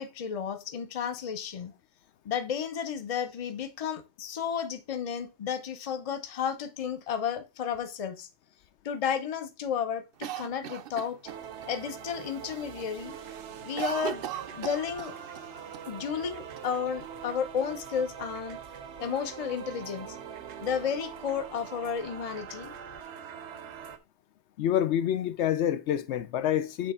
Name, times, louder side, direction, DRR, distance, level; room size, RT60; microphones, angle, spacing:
voice 1, 0.0-1.7 2.2-8.3 8.8-11.2 11.7-13.1 13.6-14.2 14.5-15.1 15.9-18.6 19.0-20.2 20.6-22.7, left 7 dB, 35° left, 0.7 m, -32 dB
Cough, 10.2-11.7 12.1-12.2 12.5-12.9 13.2-15.5 15.7-15.8 16.6-17.4, right 11 dB, 60° right, 0.7 m, -37 dB
sound 1, 11.2-24.0, right 8 dB, 80° right, 1.0 m, -43 dB
voice 2, 24.6-26.9, left 10 dB, 80° left, 0.9 m, -27 dB
9.1 x 3.3 x 4.2 m
omnidirectional pair, 1.2 m